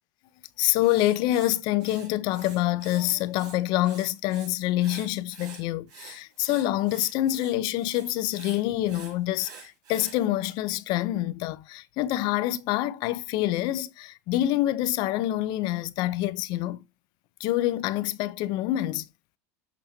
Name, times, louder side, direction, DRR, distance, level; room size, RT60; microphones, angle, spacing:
voice 1, 0.6-16.8 17.4-19.1, left 14 dB, 60° left, 0.7 m, -26 dB
Writing, 0.8-3.0 3.3-4.5 4.8-10.2, right 6 dB, 55° right, 4.2 m, -47 dB
6.9 x 5.5 x 2.8 m
hypercardioid pair, 90°, 8 cm